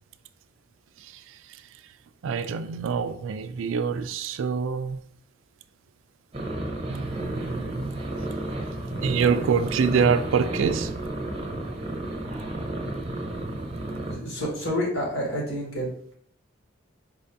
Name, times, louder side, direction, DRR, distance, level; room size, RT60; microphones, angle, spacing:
voice 1, 1.0-1.6 2.2-5.0 6.9-8.0 9.0-10.9, right 6 dB, 75° right, 11 dB, 0.3 m, -26 dB
sound 1, 6.3-14.1, right 1 dB, 30° right, 0.6 m, -32 dB
voice 2, 14.0-15.9, equal, 80° left, -3 dB, 1.6 m, -28 dB
4.5 x 2.7 x 3.4 m, 0.64 s
head